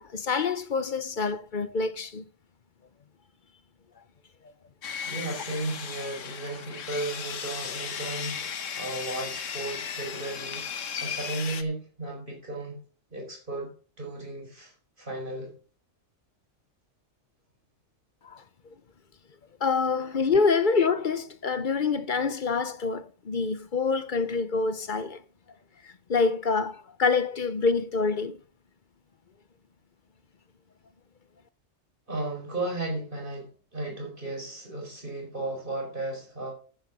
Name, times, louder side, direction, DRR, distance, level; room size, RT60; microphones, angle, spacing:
voice 1, 0.0-2.2 18.2-18.4 19.6-25.2 25.8-28.4, left 4 dB, 45° left, 0.9 m, -26 dB
Sawing, 4.8-11.6, left 7 dB, 80° left, 1.4 m, -36 dB
voice 2, 5.0-8.5 8.8-12.8 13.1-13.7 14.0-15.5 32.1-36.5, right 2 dB, 40° right, 4.9 m, -35 dB
10.0 x 9.1 x 5.5 m
omnidirectional pair, 1.3 m